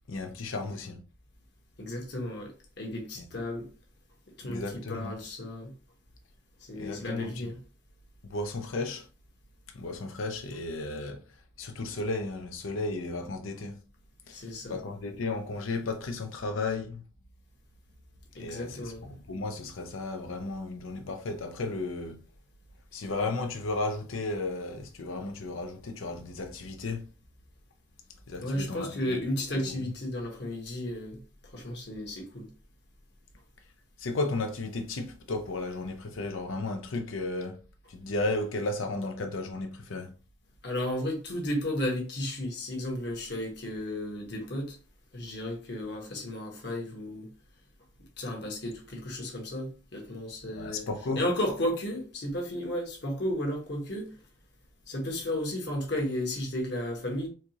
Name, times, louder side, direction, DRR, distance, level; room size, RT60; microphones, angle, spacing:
voice 1, 0.1-1.0 3.2-3.3 4.4-5.2 6.7-7.5 8.2-9.1 9.7-11.2 11.6-13.8 14.3-17.0 18.4-22.2 22.9-27.0 28.3-29.2 34.0-37.6 37.9-40.1 50.6-51.2, left 2 dB, 85° left, 0.6 m, -34 dB
voice 2, 1.8-3.7 4.4-5.7 6.6-7.6 14.3-14.8 18.4-19.1 28.4-31.2 31.5-32.5 40.6-44.8 45.1-47.3 48.2-50.9 51.1-54.1 54.9-57.3, left 1 dB, 55° left, 1.1 m, -33 dB
4.3 x 2.4 x 2.8 m
head